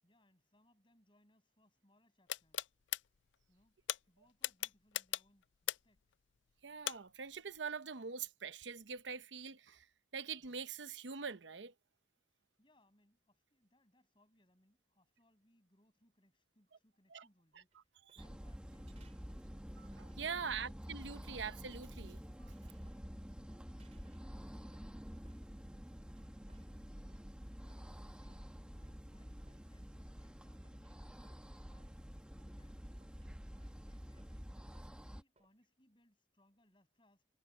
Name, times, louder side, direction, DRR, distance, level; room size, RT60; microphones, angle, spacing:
voice 1, 0.0-2.7 3.5-3.8 4.1-6.2 12.3-19.2 28.1-32.0 32.5-33.3 33.7-34.7 35.1-37.3, left 1 dB, 25° left, 7.5 m, -73 dB
sound 1, 2.3-3.0 3.9-4.0 4.4-6.0 6.9-7.0, left 14 dB, 90° left, 0.4 m, -37 dB
voice 2, 6.6-9.9 10.1-11.7 17.1-17.2 19.8-22.5, right 6 dB, 85° right, 0.9 m, -44 dB
sound 2, 17.5-35.6, right 3 dB, 35° right, 4.9 m, -76 dB
sound 3, 18.2-35.2, equal, 5° right, 1.2 m, -49 dB
head